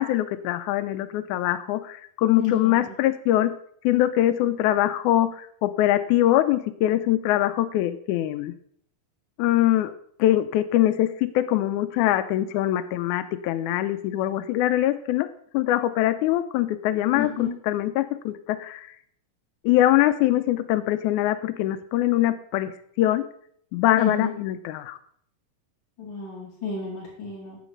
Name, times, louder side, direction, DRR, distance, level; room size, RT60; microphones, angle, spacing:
voice 1, 0.0-3.5 3.8-8.5 9.4-9.9 10.2-15.3 15.5-18.9 19.6-23.2 23.7-25.0, left 13 dB, 90° left, 10 dB, 1.7 m, -23 dB
voice 2, 2.3-2.9 17.1-17.5 24.0-24.3 26.0-27.6, left 7 dB, 40° left, -5 dB, 2.4 m, -30 dB
8.6 x 6.1 x 6.4 m, 0.65 s
omnidirectional pair, 4.0 m